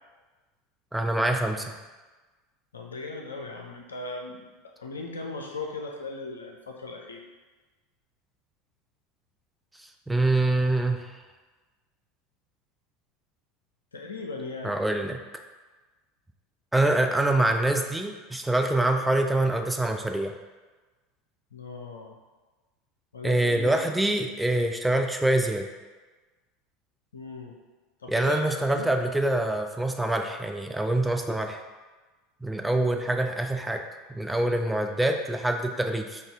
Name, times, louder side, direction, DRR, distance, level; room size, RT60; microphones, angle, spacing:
voice 1, 0.9-1.7 10.1-11.1 14.6-15.2 16.7-20.3 23.2-25.7 28.1-31.6 32.4-36.2, right 1 dB, 5° right, 4 dB, 0.4 m, -25 dB
voice 2, 2.7-4.4 4.8-7.2 13.9-14.8 21.5-22.2 23.1-23.8 27.1-27.6 28.0-28.9, left 3 dB, 80° left, 1 dB, 0.5 m, -38 dB
4.0 x 2.4 x 3.5 m, 1.3 s
figure-of-eight pair, 75°, 0 cm